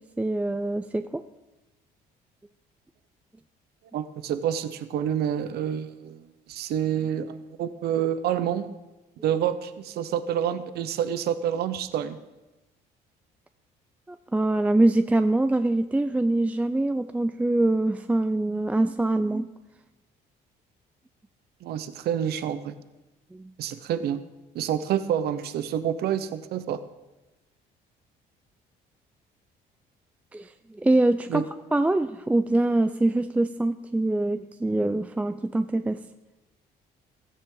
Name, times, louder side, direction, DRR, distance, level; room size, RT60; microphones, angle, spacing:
voice 1, 0.2-1.2 14.1-19.5 23.3-23.5 30.3-31.4 31.7-36.0, right 2 dB, 10° right, 10 dB, 0.4 m, -24 dB
voice 2, 3.9-8.7 9.2-12.2 21.6-22.7 23.6-24.2 24.5-26.8 31.3-31.4, right 9 dB, 70° right, 12 dB, 0.9 m, -28 dB
16.0 x 14.0 x 3.9 m, 1.1 s
cardioid pair, 110°, 17 cm